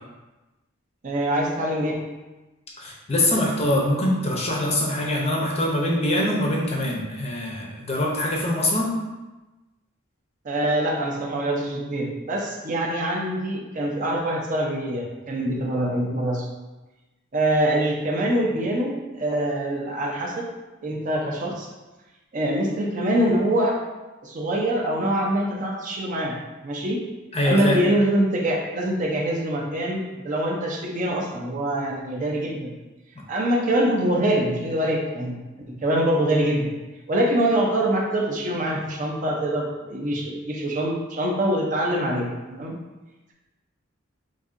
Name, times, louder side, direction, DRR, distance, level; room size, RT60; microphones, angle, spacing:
voice 1, 1.0-2.0 10.4-16.5 17.3-20.4 20.8-21.7 22.3-23.8 24.2-26.4 26.6-27.0 27.5-32.7 33.3-35.4 35.7-36.7 37.1-42.7, right 1 dB, 40° right, -2 dB, 0.5 m, -24 dB
voice 2, 2.8-9.0 27.3-27.8, left 1 dB, 30° left, -2 dB, 0.5 m, -23 dB
3.9 x 2.6 x 2.5 m, 1.1 s
head